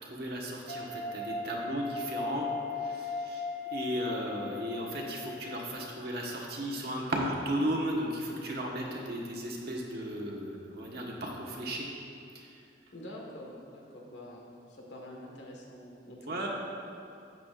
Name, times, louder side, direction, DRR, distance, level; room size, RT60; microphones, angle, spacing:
voice 1, 0.0-2.5 2.8-11.9 12.3-12.6 16.2-16.5, right 1 dB, 60° right, -2 dB, 1.4 m, -35 dB
sound 1, 0.7-5.9, left 3 dB, 45° left, 0.6 m, -38 dB
voice 2, 12.9-14.4 14.8-16.5, left 1 dB, 80° left, -2 dB, 1.6 m, -46 dB
12.5 x 8.4 x 2.5 m, 2.6 s
head